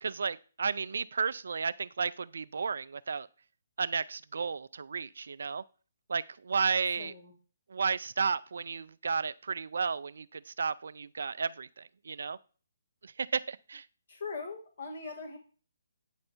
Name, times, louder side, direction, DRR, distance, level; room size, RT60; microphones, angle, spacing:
voice 1, 0.0-3.3 3.8-5.6 6.1-7.1 7.7-12.4 13.0-13.9, right 5 dB, 70° right, 0.4 m, -33 dB
voice 2, 7.0-7.3 14.1-15.4, left 4 dB, 65° left, 1.5 m, -41 dB
8.9 x 3.3 x 4.3 m
figure-of-eight pair, 140°, 0 cm